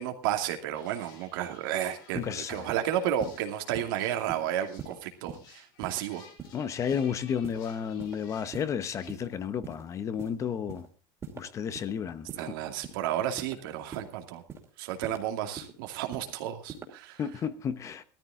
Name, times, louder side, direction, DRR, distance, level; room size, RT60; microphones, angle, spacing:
voice 1, 0.0-6.2 12.4-14.4 14.8-17.2, right 11 dB, 90° right, 2.5 m, -32 dB
sound 1, 0.7-9.1, left 5 dB, 90° left, 7.4 m, -56 dB
voice 2, 2.1-2.7 6.5-10.9 11.3-12.6 17.2-18.0, left 7 dB, 25° left, 0.9 m, -32 dB
sound 2, 2.1-2.3 2.7-2.8 3.2-3.4 3.7-3.9 4.3-4.4 4.8-4.9 5.3-5.4 5.8-6.0 6.4-6.6 6.9-7.1 7.4-7.6 8.0-8.2 8.5-8.7 9.1-9.2 9.6-9.8 10.2-10.3 10.7-10.9 11.2-11.4 11.7-11.9 12.3-12.4 12.8-13.0 13.4-13.5 13.9-14.1 14.5-14.6 15.0-15.2 15.6-15.7 16.1-16.3 16.7-16.9, right 6 dB, 25° right, 2.5 m, -41 dB
17.0 x 13.5 x 3.7 m
cardioid pair, 155°, 11 cm